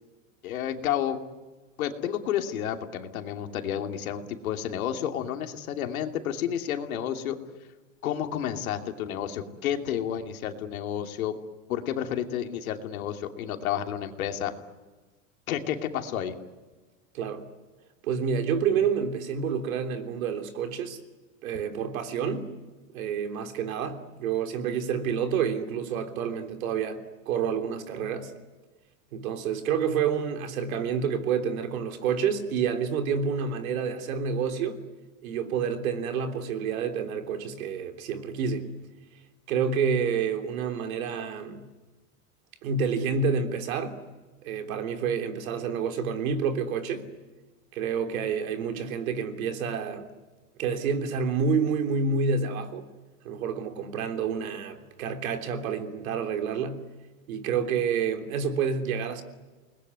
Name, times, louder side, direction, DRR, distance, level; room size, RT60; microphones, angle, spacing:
voice 1, 0.4-1.2 1.8-7.4 8.0-11.3 11.7-14.5 15.5-16.4, left 10 dB, 85° left, 2.9 m, -30 dB
voice 2, 18.0-21.0 21.4-22.5 22.9-28.3 29.1-34.8 35.2-38.7 39.5-41.7 42.6-44.0 44.4-47.1 47.7-50.1 50.6-52.9 53.3-56.8 57.3-59.2, right 6 dB, 80° right, 3.4 m, -28 dB
29.0 x 20.5 x 9.6 m
supercardioid pair, 135°, 41 cm